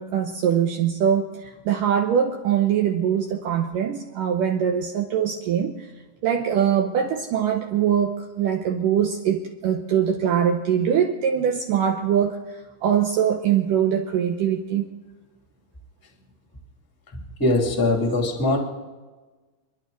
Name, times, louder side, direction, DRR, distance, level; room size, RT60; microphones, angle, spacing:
voice 1, 0.0-5.9 6.2-14.9, right 8 dB, 75° right, 2.0 m, -22 dB
voice 2, 17.4-18.6, left 2 dB, 5° left, 1.6 m, -21 dB
29.0 x 11.0 x 4.0 m
omnidirectional pair, 4.9 m